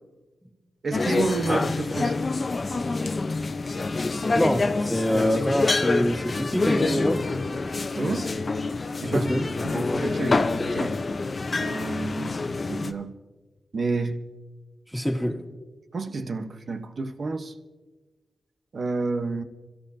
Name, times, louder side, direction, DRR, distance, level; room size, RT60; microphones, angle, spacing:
voice 1, 0.8-2.1 7.9-8.3 9.0-9.3 9.6-11.0 11.6-12.4 12.7-13.1 13.7-14.2 15.9-17.5 18.7-19.4, right 3 dB, 60° right, 1.3 m, -29 dB
sound 1, 0.9-12.9, left 3 dB, 45° left, 0.9 m, -27 dB
voice 2, 4.3-7.3 9.1-9.5 14.9-15.4, equal, ahead, 2.2 m, -25 dB
26.5 x 14.5 x 2.9 m
cardioid pair, 50°, 0 cm